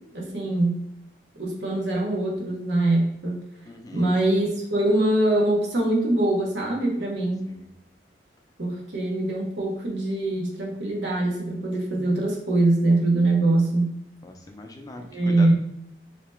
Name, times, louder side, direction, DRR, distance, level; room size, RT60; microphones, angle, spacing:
voice 1, 0.1-0.8 1.4-3.4 3.9-7.5 8.6-13.9 15.1-15.5, right 2 dB, 75° right, -2 dB, 1.0 m, -23 dB
voice 2, 3.7-4.1 7.5-7.7 14.2-15.5, left 2 dB, 20° left, 3 dB, 0.4 m, -41 dB
3.2 x 2.9 x 3.3 m, 0.80 s
head